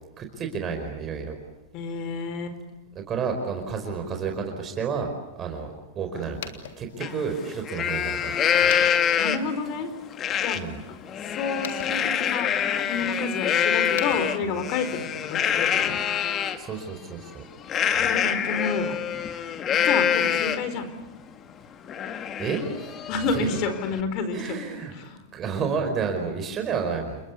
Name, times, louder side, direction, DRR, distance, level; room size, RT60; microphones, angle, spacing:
voice 1, 0.2-1.3 2.9-5.1 5.3-5.7 5.9-6.4 6.8-8.7 10.5-10.8 16.5-17.4 22.4-22.9 23.3-23.5 24.3-24.9 25.3-27.2, right 5 dB, 30° right, 4 dB, 4.9 m, -30 dB
voice 2, 1.7-2.6 6.1-6.4 7.0-7.1 9.2-9.9 10.4-12.5 12.8-15.9 18.0-19.0 19.8-20.9 23.1-24.6 24.9-25.2, left 4 dB, 45° left, 10 dB, 4.4 m, -30 dB
sound 1, 6.2-15.0, left 8 dB, 75° left, 3.2 m, -45 dB
Livestock farm animals working animals, 7.0-7.1 7.5-9.6 10.2-10.6 11.0-16.6 17.7-20.8 21.2-21.3 21.6-24.0, left 9 dB, 30° left, 2.0 m, -25 dB
29.5 x 21.0 x 8.5 m, 1.1 s
hypercardioid pair, 120°, 0 cm